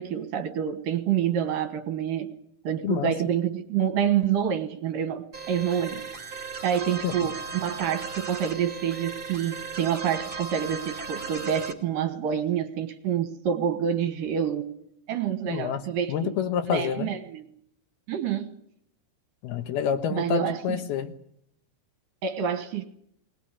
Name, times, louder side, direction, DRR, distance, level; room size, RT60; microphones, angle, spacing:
voice 1, 0.0-2.3 2.6-6.1 6.6-14.7 15.1-16.4 16.7-17.5 18.1-18.6 20.1-20.6 22.2-22.8, right 8 dB, 65° right, 2.7 m, -27 dB
voice 2, 2.8-3.1 7.0-7.1 15.5-15.8 16.1-17.1 19.4-21.1, left 9 dB, 70° left, 2.9 m, -28 dB
sound 1, 5.3-11.7, right 4 dB, 20° right, 1.9 m, -36 dB
21.0 x 19.5 x 9.9 m
omnidirectional pair, 4.9 m